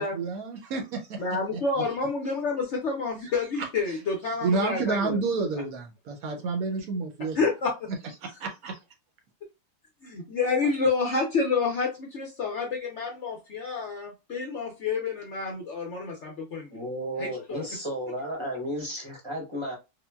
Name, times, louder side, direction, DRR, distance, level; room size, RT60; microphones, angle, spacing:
voice 1, 0.0-1.2 1.5-1.8 3.9-4.0 4.4-7.4 8.4-8.7, right 4 dB, 70° right, 0.9 m, -30 dB
voice 2, 1.2-5.2 7.4-7.7 10.0-16.8 17.2-17.6, left 4 dB, 60° left, 0.7 m, -29 dB
voice 3, 16.7-19.7, equal, 25° right, 0.6 m, -33 dB
3.7 x 2.1 x 2.2 m
omnidirectional pair, 1.8 m